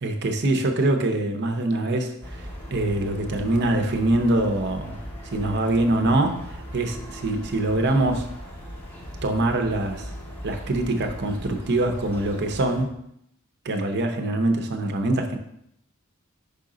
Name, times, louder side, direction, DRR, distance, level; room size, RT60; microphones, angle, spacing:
voice 1, 0.0-5.0 5.3-8.3 9.2-10.1 10.4-12.9 13.6-15.4, right 2 dB, 55° right, 5 dB, 0.7 m, -24 dB
sound 1, 2.2-12.8, equal, 10° left, 1.3 m, -39 dB
5.6 x 5.2 x 3.8 m, 0.74 s
head